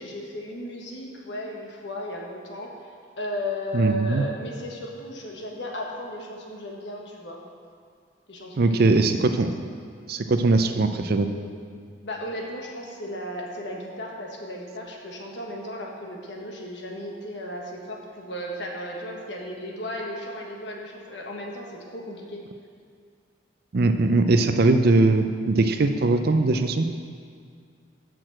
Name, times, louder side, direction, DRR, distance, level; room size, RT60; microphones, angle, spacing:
voice 1, 0.0-2.7 3.2-7.4 8.3-9.1 12.0-22.4, left 1 dB, 65° left, 0 dB, 1.3 m, -35 dB
voice 2, 3.7-4.2 8.6-9.5 10.1-11.3 23.7-26.9, right 3 dB, 55° right, 7 dB, 0.5 m, -20 dB
6.7 x 6.1 x 7.5 m, 2.2 s
head